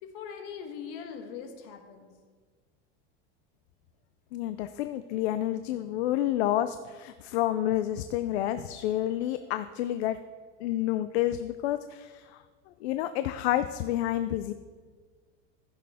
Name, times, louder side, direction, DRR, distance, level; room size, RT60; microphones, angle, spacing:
voice 1, 0.0-2.1, left 7 dB, 55° left, 5 dB, 1.4 m, -41 dB
voice 2, 4.3-10.2 10.6-12.4 12.8-14.5, left 13 dB, 70° left, 11 dB, 0.5 m, -29 dB
15.0 x 6.3 x 3.5 m, 1.5 s
supercardioid pair, 165°, 33 cm